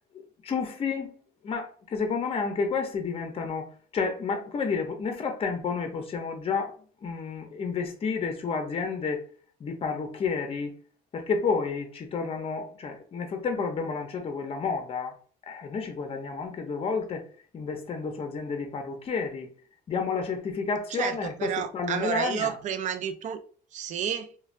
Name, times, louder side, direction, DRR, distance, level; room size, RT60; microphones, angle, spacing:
voice 1, 0.1-1.2 1.4-6.7 7.0-9.3 9.6-10.8 11.1-15.1 15.5-17.2 17.5-19.5 19.9-22.6, left 5 dB, 35° left, 0.6 m, -30 dB
voice 2, 20.9-23.4 23.7-24.3, right 9 dB, 45° right, 0.4 m, -31 dB
3.2 x 2.2 x 2.5 m
cardioid pair, 110°, 17 cm